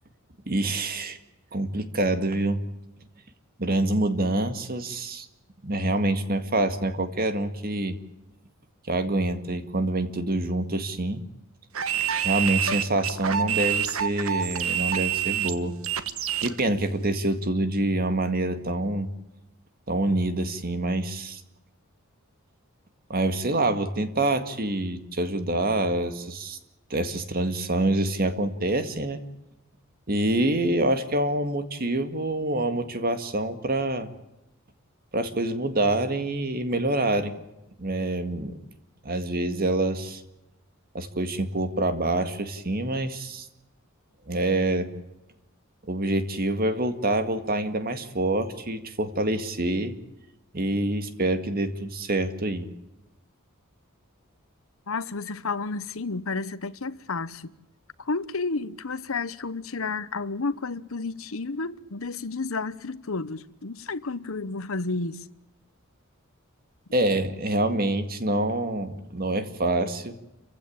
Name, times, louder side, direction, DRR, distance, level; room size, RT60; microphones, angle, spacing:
voice 1, 0.5-1.2 1.5-2.6 3.6-5.3 5.6-8.0 8.9-11.2 12.2-15.7 16.4-19.1 19.9-21.4 23.1-26.6 26.9-29.2 30.1-34.1 35.1-37.4 37.8-38.6 39.0-40.2 40.9-43.5 44.3-44.9 45.8-49.9 50.5-52.7 66.9-70.2, right 2 dB, 45° right, 2.0 m, -26 dB
sound 1, 11.7-16.6, right 9 dB, 70° right, 1.3 m, -27 dB
voice 2, 54.9-57.5 58.0-65.3, left 3 dB, 65° left, 1.0 m, -31 dB
29.0 x 16.0 x 8.7 m
head